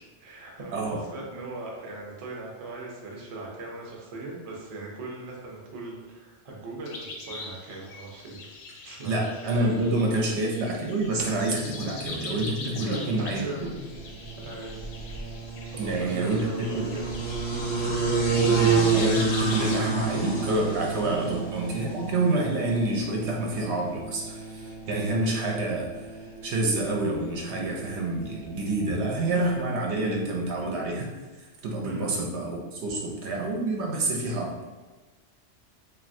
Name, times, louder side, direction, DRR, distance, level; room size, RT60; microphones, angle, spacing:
voice 1, 0.0-8.4 8.8-9.3 9.6-10.4 12.6-13.6 14.4-14.7 15.6-17.1 21.0-21.3 28.9-29.0 31.8-32.2, right 2 dB, 45° right, -2 dB, 0.5 m, -39 dB
voice 2, 0.7-1.0 9.1-13.7 15.8-16.9 18.5-31.1 31.6-34.6, right 2 dB, 70° right, 0 dB, 0.8 m, -28 dB
sound 1, 6.9-19.8, left 3 dB, 85° left, 0.9 m, -42 dB
sound 2, 11.6-29.6, right 4 dB, 35° left, 0.5 m, -30 dB
3.1 x 2.6 x 2.6 m, 1.3 s
omnidirectional pair, 1.2 m